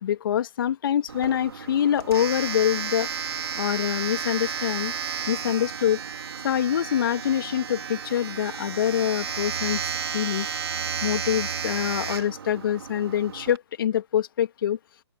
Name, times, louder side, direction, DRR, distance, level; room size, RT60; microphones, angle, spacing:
voice 1, 0.0-3.1 3.5-4.9 5.3-6.0 6.4-9.8 10.1-10.5 11.0-14.8, left 10 dB, 50° left, 2.9 m, -25 dB
Domestic sounds home sounds, 1.1-13.6, right 7 dB, 65° right, 3.5 m, -32 dB
open air
figure-of-eight pair, 135°, 14 cm